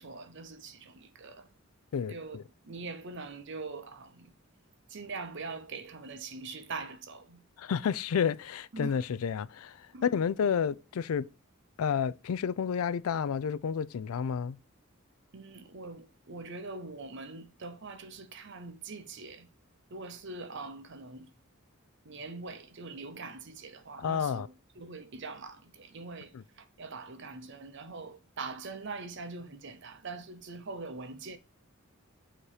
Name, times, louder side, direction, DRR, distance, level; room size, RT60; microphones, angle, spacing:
voice 1, 0.0-1.5 2.1-2.4 2.6-4.3 4.9-7.4 8.7-9.0 9.9-10.1 15.3-19.5 19.9-21.3 22.0-31.4, right 3 dB, 55° right, 0.8 m, -43 dB
voice 2, 7.6-11.3 11.8-14.6 24.0-24.5, left 7 dB, 85° left, 0.4 m, -30 dB
6.9 x 3.0 x 4.8 m
head